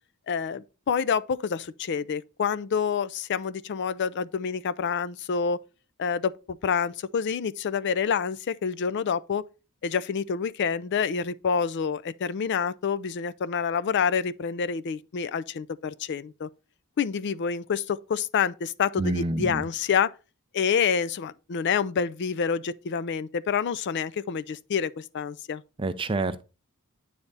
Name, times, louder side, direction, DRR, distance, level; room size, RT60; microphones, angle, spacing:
voice 1, 0.3-5.6 6.0-6.3 6.6-9.4 9.8-16.5 17.0-20.1 20.5-25.6, left 6 dB, 50° left, 0.4 m, -27 dB
voice 2, 19.0-19.6 25.8-26.4, right 2 dB, 25° right, 0.5 m, -28 dB
9.5 x 3.4 x 3.9 m
head